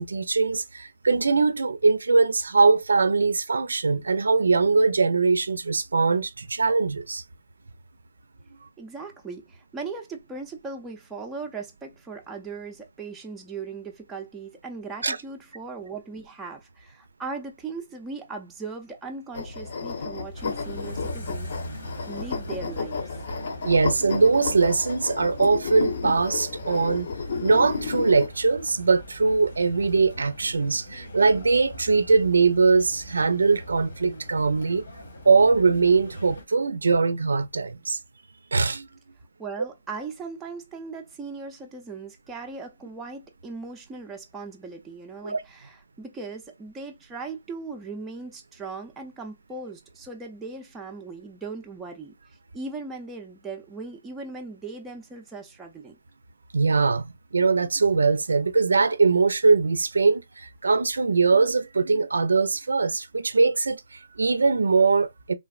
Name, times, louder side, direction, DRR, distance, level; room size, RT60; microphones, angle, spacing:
voice 1, 0.0-7.2 15.0-15.2 23.6-27.1 27.4-34.9 35.3-38.0 38.5-38.9 45.2-45.4 56.5-57.0 57.3-65.3, right 4 dB, 90° right, 0.4 m, -21 dB
voice 2, 8.8-21.5 22.1-23.1 39.4-52.1 52.5-56.0, right 4 dB, 10° right, 0.4 m, -38 dB
sound 1, 19.3-28.3, left 5 dB, 50° left, 0.7 m, -32 dB
sound 2, 20.3-36.4, equal, 70° left, 1.4 m, -42 dB
3.3 x 2.0 x 2.3 m
hypercardioid pair, 165°, 0 cm